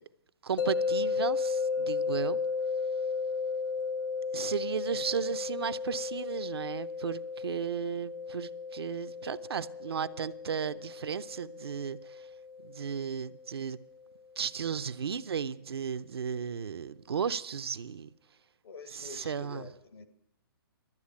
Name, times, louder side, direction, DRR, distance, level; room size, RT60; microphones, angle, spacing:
voice 1, 0.4-2.4 4.3-12.3 12.6-13.8 14.4-18.1 18.9-19.7, right 7 dB, 85° right, 0.6 m, -35 dB
sound 1, 0.6-13.6, left 5 dB, 60° left, 0.8 m, -34 dB
voice 2, 18.6-20.1, left 5 dB, 85° left, 1.7 m, -47 dB
12.0 x 8.1 x 8.5 m
hypercardioid pair, 155°, 13 cm